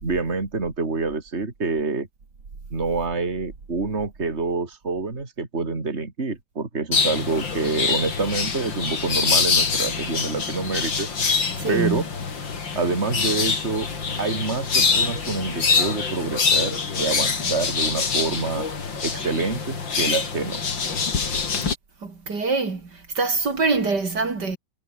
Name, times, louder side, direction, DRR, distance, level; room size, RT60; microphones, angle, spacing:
voice 1, 0.0-2.1 2.7-11.1 11.7-12.0 12.7-13.9 14.2-18.7 19.0-20.6, right 3 dB, 35° right, 3.4 m, -27 dB
sound 1, 6.9-21.8, left 5 dB, 80° left, 3.6 m, -25 dB
voice 2, 11.6-12.1 22.0-22.9 23.2-24.6, right 4 dB, 60° right, 3.8 m, -24 dB
omnidirectional pair, 2.0 m